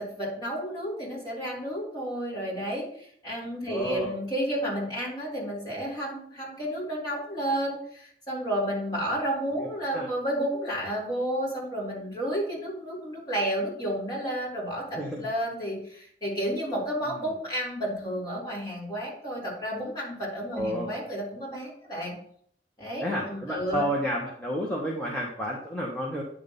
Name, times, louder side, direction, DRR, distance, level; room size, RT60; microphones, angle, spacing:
voice 1, 0.0-22.1 22.8-23.9, equal, 25° left, -6 dB, 3.5 m, -31 dB
voice 2, 3.7-4.1 9.6-10.1 15.0-15.2 20.5-20.9 23.0-26.2, equal, 5° left, -4 dB, 1.2 m, -31 dB
9.5 x 3.7 x 5.4 m, 0.63 s
head